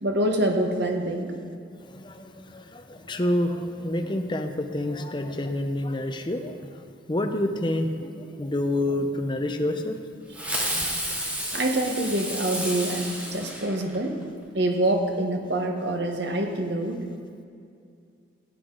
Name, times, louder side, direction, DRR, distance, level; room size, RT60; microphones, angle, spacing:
voice 1, 0.0-1.4 10.4-10.9 11.5-14.2 14.5-17.0, right 1 dB, 60° right, 3 dB, 1.2 m, -26 dB
voice 2, 1.9-6.6 7.1-10.0 10.3-10.4 10.8-10.9, left 1 dB, 25° left, 6 dB, 0.6 m, -28 dB
Fireworks, 10.3-14.2, right 1 dB, 5° right, 1.2 m, -31 dB
16.0 x 7.9 x 3.9 m, 2.4 s
head